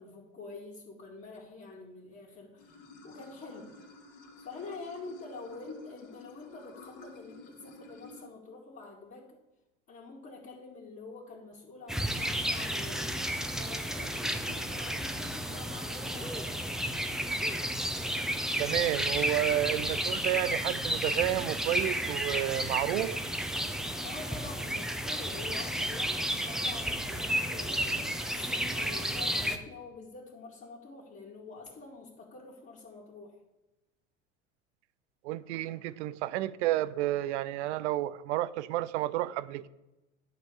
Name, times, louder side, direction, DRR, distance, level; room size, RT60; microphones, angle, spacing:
voice 1, 0.0-3.8 4.4-9.4 9.9-13.3 13.5-16.7 23.7-33.4, left 3 dB, 35° left, -6 dB, 2.3 m, -46 dB
Water / Sink (filling or washing), 2.6-8.3, left 3 dB, 55° left, 2.2 m, -52 dB
sound 1, 11.9-29.6, equal, ahead, 0.8 m, -32 dB
voice 2, 18.6-23.2 35.2-39.7, right 14 dB, 65° right, 17 dB, 0.6 m, -31 dB
11.0 x 4.4 x 7.0 m, 0.99 s
figure-of-eight pair, 70°, 38 cm